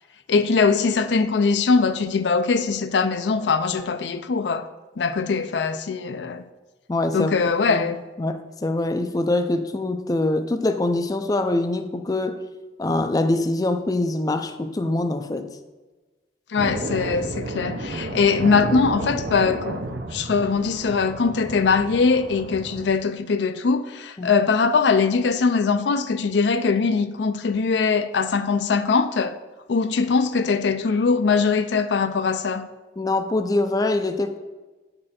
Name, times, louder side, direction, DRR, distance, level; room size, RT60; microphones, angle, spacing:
voice 1, 0.3-4.7 5.0-6.4 7.1-8.0 16.5-19.8 20.1-29.3 29.7-32.7, left 4 dB, 75° left, 0.5 m, -21 dB
voice 2, 6.9-7.3 7.7-12.4 12.8-15.5 24.2-24.3 33.0-34.4, left 2 dB, 20° left, 0.4 m, -24 dB
sound 1, 16.6-22.9, right 2 dB, 70° right, 0.7 m, -32 dB
9.6 x 5.3 x 4.2 m
head